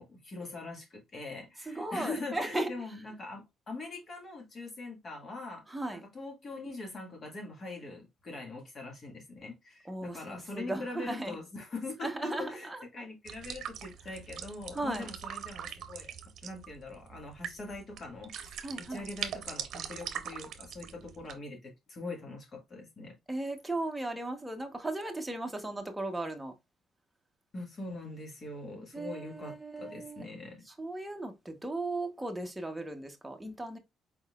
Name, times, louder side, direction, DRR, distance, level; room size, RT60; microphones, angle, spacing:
voice 1, 0.0-5.6 5.9-16.1 16.4-23.1 27.5-30.6, left 2 dB, 45° left, 1.8 m, -42 dB
voice 2, 1.7-2.7 5.7-6.0 9.8-11.3 12.0-12.8 14.7-15.1 18.6-19.1 23.3-26.5 28.9-30.2 30.8-33.8, right 2 dB, 10° right, 1.0 m, -36 dB
sound 1, 13.3-21.3, right 9 dB, 70° right, 0.7 m, -42 dB
4.6 x 4.0 x 2.4 m
cardioid pair, 95°, 0 cm